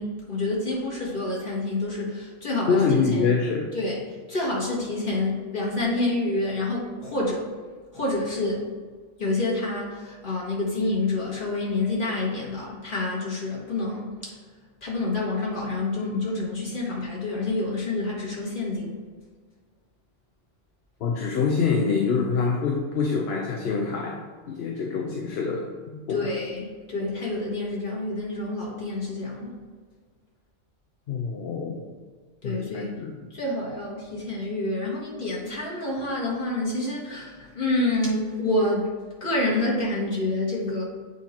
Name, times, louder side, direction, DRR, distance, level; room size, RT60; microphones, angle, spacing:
voice 1, 0.0-3.3 3.7-4.0 4.3-7.5 7.9-8.7 9.2-14.3 14.8-18.9 26.1-29.5 32.4-32.9 33.3-38.9 39.2-40.8, left 2 dB, 45° left, -4 dB, 1.8 m, -28 dB
voice 2, 2.7-3.7 21.0-26.3 31.1-31.8 32.4-33.1, left 5 dB, 65° left, 1 dB, 0.8 m, -25 dB
8.3 x 2.8 x 4.3 m, 1.5 s
omnidirectional pair, 1.2 m